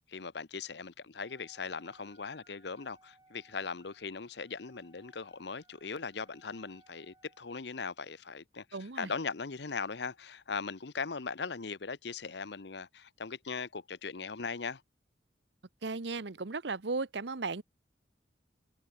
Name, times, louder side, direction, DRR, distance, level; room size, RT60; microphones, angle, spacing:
voice 1, 0.0-8.6 9.0-14.8, left 5 dB, 70° left, 0.8 m, -39 dB
Wind instrument woodwind instrument, 1.2-7.6, right 2 dB, 20° right, 5.6 m, -65 dB
voice 2, 8.7-9.1 15.8-17.6, right 3 dB, 75° right, 1.0 m, -36 dB
head